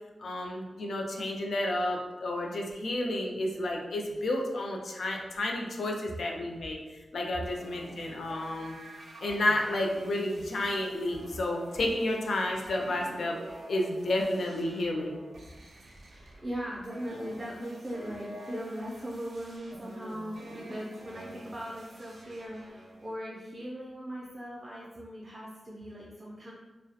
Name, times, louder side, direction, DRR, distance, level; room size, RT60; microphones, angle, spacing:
voice 1, 0.2-6.8 7.1-8.8 9.2-13.4 13.7-15.2, left 1 dB, 65° left, 1 dB, 0.3 m, -31 dB
sound 1, 7.4-23.1, right 1 dB, 75° right, 0.4 m, -48 dB
voice 2, 15.9-26.5, equal, 15° right, -5 dB, 0.3 m, -39 dB
2.3 x 2.0 x 2.7 m, 1.2 s
wide cardioid pair, 155°, 0 cm